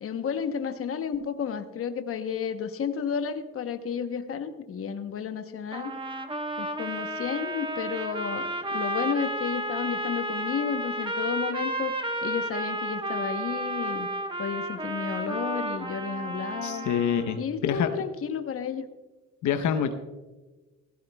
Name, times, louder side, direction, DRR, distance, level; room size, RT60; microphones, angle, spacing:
voice 1, 0.0-5.9 6.6-11.9 12.2-14.1 14.4-16.9 17.3-18.9, left 7 dB, 50° left, 8 dB, 0.9 m, -32 dB
sound 1, 5.7-17.4, right 1 dB, 15° right, 1.1 m, -32 dB
voice 2, 16.6-17.9 19.4-19.9, left 8 dB, 75° left, 8 dB, 0.9 m, -26 dB
16.5 x 15.5 x 2.3 m, 1.2 s
cardioid pair, 90°, 30 cm